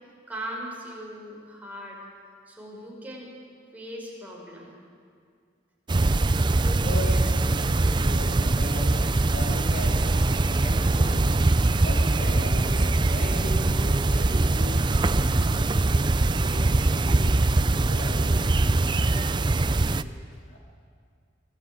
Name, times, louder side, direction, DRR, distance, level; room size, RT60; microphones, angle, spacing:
voice 1, 0.3-2.0 2.5-3.3 3.7-4.8 6.4-7.0, equal, 10° right, -2 dB, 5.1 m, -39 dB
sound 1, 5.9-20.0, right 2 dB, 25° right, 0.5 m, -22 dB
voice 2, 6.8-14.9 15.1-17.4 17.7-20.6, left 1 dB, 50° left, -1 dB, 3.2 m, -38 dB
24.0 x 18.0 x 8.7 m, 2.2 s
head